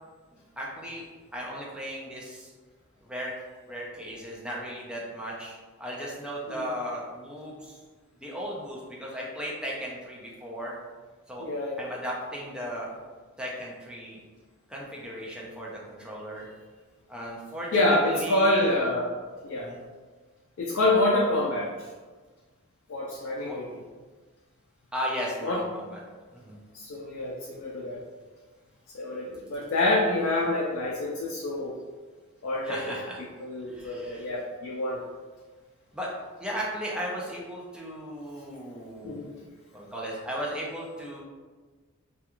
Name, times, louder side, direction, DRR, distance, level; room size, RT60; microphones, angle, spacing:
voice 1, 0.6-1.0 1.3-2.5 3.0-3.3 3.7-7.8 8.2-10.7 11.3-11.5 11.8-12.9 13.4-14.2 14.7-16.5 17.1-18.6 19.6-19.8 23.4-23.6 24.9-26.0 26.3-26.6 32.6-33.2 33.7-34.3 35.9-36.1 36.4-39.2 39.7-41.2, equal, 5° right, -5 dB, 0.4 m, -36 dB
voice 2, 11.4-11.8 17.7-19.1 19.4-19.7 20.6-21.7 22.9-23.7 25.4-25.6 26.7-28.0 28.9-31.7 32.4-33.0 33.4-35.0 39.0-39.3, left 1 dB, 65° left, -3 dB, 0.4 m, -27 dB
2.3 x 2.3 x 2.9 m, 1.4 s
head